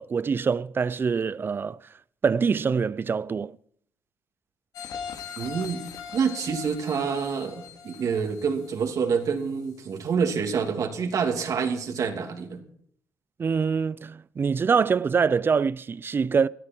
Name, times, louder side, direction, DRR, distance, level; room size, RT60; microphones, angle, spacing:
voice 1, 0.0-1.8 2.2-3.6 13.4-16.5, right 5 dB, 30° right, 0.5 m, -24 dB
sound 1, 4.7-9.5 9.9-10.0, left 7 dB, 75° left, 2.6 m, -40 dB
voice 2, 5.4-12.6, right 6 dB, 55° right, 2.9 m, -27 dB
18.0 x 12.5 x 4.6 m
cardioid pair, 105°, 7 cm